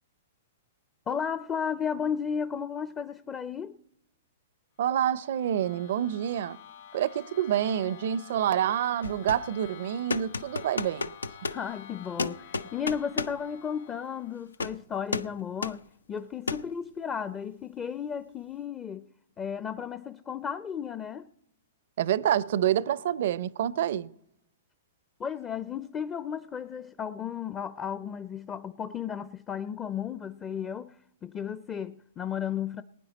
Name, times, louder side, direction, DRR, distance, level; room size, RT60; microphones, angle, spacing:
voice 1, 1.1-3.8 11.5-19.1 19.4-21.3 25.2-32.8, left 7 dB, 20° left, 0.5 m, -34 dB
voice 2, 4.8-6.6 6.9-11.1 22.0-24.1, right 10 dB, 60° right, 0.5 m, -27 dB
sound 1, 4.9-14.5, left 9 dB, 65° left, 2.9 m, -50 dB
sound 2, 9.0-9.5 10.1-11.6 12.2-13.4 14.5-14.8 15.1-15.4 15.6-15.8 16.5-16.7, left 3 dB, 85° left, 0.5 m, -33 dB
20.0 x 9.6 x 4.0 m
hypercardioid pair, 115°, 0 cm